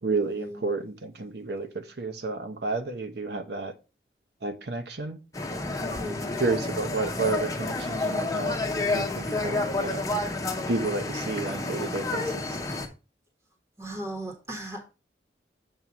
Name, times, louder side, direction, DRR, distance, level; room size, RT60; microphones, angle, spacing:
voice 1, 0.0-3.7 4.4-5.2 6.4-10.1 10.7-12.6, right 3 dB, 70° right, 7 dB, 0.9 m, -31 dB
sound 1, 5.3-12.9, left 2 dB, 20° left, 0.8 m, -30 dB
voice 2, 5.8-6.3 13.8-14.9, equal, 15° right, 0 dB, 1.4 m, -36 dB
7.3 x 2.8 x 5.9 m, 0.30 s
head